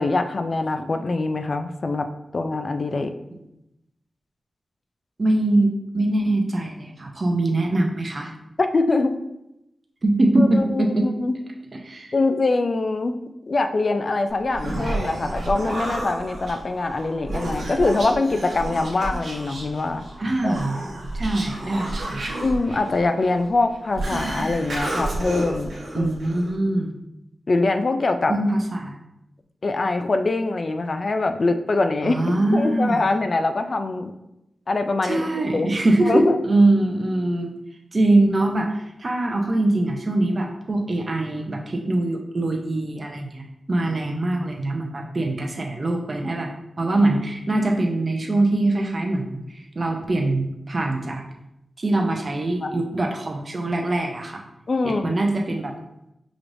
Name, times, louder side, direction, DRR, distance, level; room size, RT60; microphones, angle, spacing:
voice 1, 0.0-3.1 8.6-9.2 10.4-11.4 12.1-13.2 13.5-20.0 20.4-20.6 22.4-26.1 27.5-28.3 29.6-32.2 32.5-34.1 34.7-35.2 35.5-35.7 36.0-36.4 52.6-52.8 54.7-55.2, left 3 dB, 60° left, 7 dB, 0.3 m, -23 dB
voice 2, 5.2-8.3 10.0-11.1 11.8-12.1 20.2-20.8 21.1-22.2 25.9-26.9 28.3-29.0 32.0-33.0 35.0-37.5 37.9-46.5 46.8-51.2 51.8-54.4 54.8-55.7, right 2 dB, 50° right, 1 dB, 0.6 m, -23 dB
Human voice, 14.3-26.5, right 1 dB, 70° right, 1.1 m, -31 dB
4.9 x 3.1 x 2.6 m, 0.87 s
cardioid pair, 40°, 0 cm